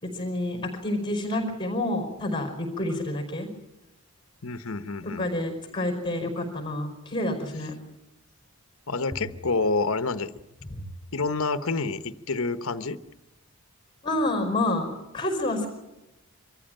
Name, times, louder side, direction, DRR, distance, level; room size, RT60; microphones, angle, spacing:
voice 1, 0.0-3.5 5.2-7.7 10.7-10.8 14.0-15.7, left 1 dB, 20° left, 4 dB, 4.8 m, -28 dB
voice 2, 4.4-5.3 8.9-10.3 11.1-13.0, left 3 dB, 60° left, 12 dB, 1.0 m, -28 dB
24.5 x 14.5 x 9.0 m, 0.97 s
head